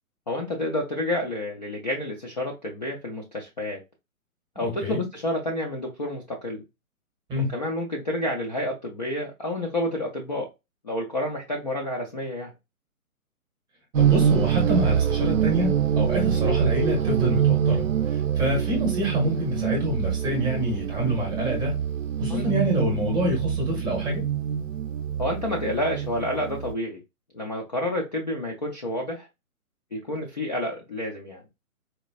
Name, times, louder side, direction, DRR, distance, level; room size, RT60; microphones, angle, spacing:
voice 1, 0.3-3.8 4.6-6.6 7.5-10.5 10.8-12.5 22.3-22.5 25.2-27.0 27.3-29.3 29.9-31.4, left 1 dB, 30° left, 0.4 m, -29 dB
voice 2, 4.5-5.0 7.3-7.6 14.0-21.8 22.2-24.3, equal, 10° right, 0.8 m, -26 dB
sound 1, 13.9-26.7, right 9 dB, 60° right, 0.5 m, -25 dB
4.1 x 2.1 x 2.3 m
hypercardioid pair, 150°, 44 cm